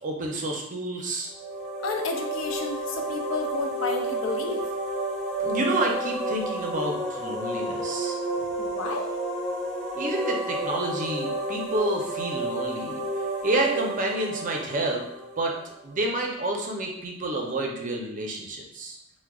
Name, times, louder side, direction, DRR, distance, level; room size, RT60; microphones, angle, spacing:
voice 1, 0.0-1.3 5.4-8.2 9.9-13.0 13.4-15.0 15.4-15.6 15.8-19.0, right 2 dB, 40° right, 0 dB, 0.5 m, -29 dB
sound 1, 1.3-15.9, right 1 dB, ahead, 1.0 m, -31 dB
voice 2, 1.8-4.7 8.6-9.1, left 4 dB, 85° left, 3 dB, 0.5 m, -31 dB
4.6 x 2.1 x 2.3 m, 0.79 s
head